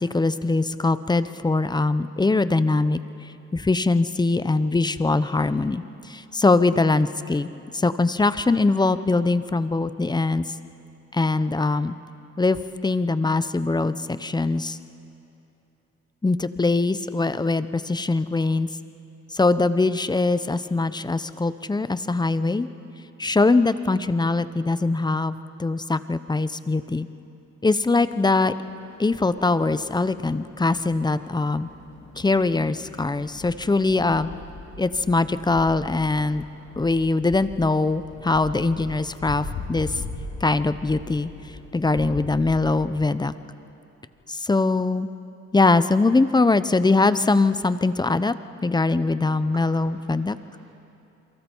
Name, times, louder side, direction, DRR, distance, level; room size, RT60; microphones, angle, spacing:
voice 1, 0.0-3.0 3.5-5.8 6.1-7.5 7.7-10.4 11.1-12.0 12.4-12.6 12.8-14.8 16.2-18.7 19.3-22.7 23.2-25.3 25.6-27.1 27.6-28.5 29.0-31.7 32.2-34.3 34.8-36.4 36.8-39.9 40.4-41.3 41.7-43.3 44.3-45.1 45.5-48.3 48.6-50.4, left 3 dB, 15° left, 13 dB, 0.7 m, -22 dB
sound 1, 27.7-42.9, left 3 dB, 65° left, 2.8 m, -40 dB
voice 2, 49.5-50.7, right 3 dB, 45° right, -2 dB, 2.8 m, -49 dB
28.5 x 23.5 x 4.6 m, 2.8 s
cardioid pair, 90°, 30 cm